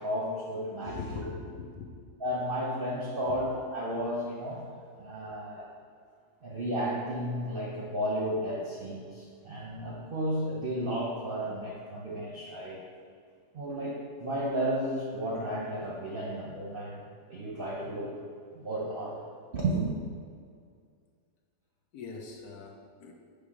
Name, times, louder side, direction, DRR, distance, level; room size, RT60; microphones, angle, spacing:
voice 1, 0.0-1.3 2.2-4.6 5.0-5.7 6.4-12.8 13.5-17.0 17.3-18.1 18.5-19.3 19.5-19.9, right 1 dB, 45° right, -5 dB, 0.8 m, -33 dB
voice 2, 0.9-1.9 3.3-3.4 21.9-23.1, left 5 dB, 75° left, 1 dB, 1.2 m, -41 dB
6.2 x 3.4 x 4.8 m, 2.1 s
omnidirectional pair, 1.7 m